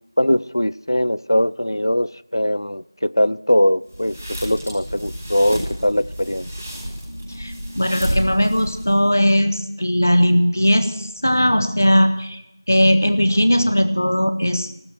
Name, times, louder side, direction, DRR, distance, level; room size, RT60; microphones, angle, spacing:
voice 1, 0.2-6.5, left 1 dB, 80° left, 20 dB, 0.6 m, -21 dB
sound 1, 3.9-9.1, equal, 10° right, 2.3 m, -30 dB
voice 2, 7.3-12.4 12.7-14.7, equal, 45° left, 11 dB, 1.5 m, -18 dB
16.0 x 13.5 x 6.3 m, 0.83 s
figure-of-eight pair, 180°, 2 cm